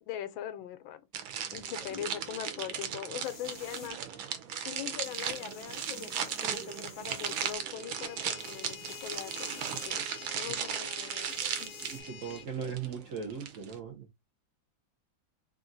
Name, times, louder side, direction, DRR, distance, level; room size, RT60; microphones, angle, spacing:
voice 1, 0.0-1.0 1.5-4.2 4.6-11.7, left 11 dB, 80° left, 1.4 m, -41 dB
sound 1, 1.1-13.8, right 8 dB, 85° right, 1.6 m, -37 dB
sound 2, 3.2-3.9 5.0-7.5 8.4-9.9 11.3-12.0, left 4 dB, 40° left, 1.4 m, -51 dB
sound 3, 7.8-12.5, left 7 dB, 60° left, 1.2 m, -48 dB
voice 2, 11.8-14.1, right 7 dB, 60° right, 0.8 m, -38 dB
3.6 x 2.5 x 3.9 m
omnidirectional pair, 2.2 m